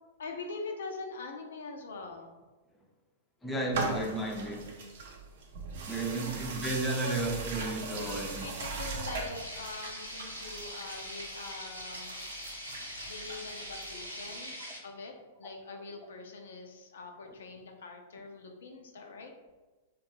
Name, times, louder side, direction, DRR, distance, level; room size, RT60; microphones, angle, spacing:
voice 1, 0.2-2.3 6.1-6.4 7.0-7.2 8.0-12.2 13.1-15.1 15.4-19.3, left 3 dB, 65° left, 3 dB, 0.3 m, -43 dB
voice 2, 3.4-4.7 5.9-8.5 17.3-17.4, right 2 dB, 10° left, -1 dB, 0.5 m, -33 dB
sound 1, 3.7-14.3, right 3 dB, 55° right, 0.6 m, -40 dB
sound 2, 9.3-14.8, equal, 90° left, 0.8 m, -42 dB
3.1 x 2.2 x 2.9 m, 1.2 s
figure-of-eight pair, 100°, 0 cm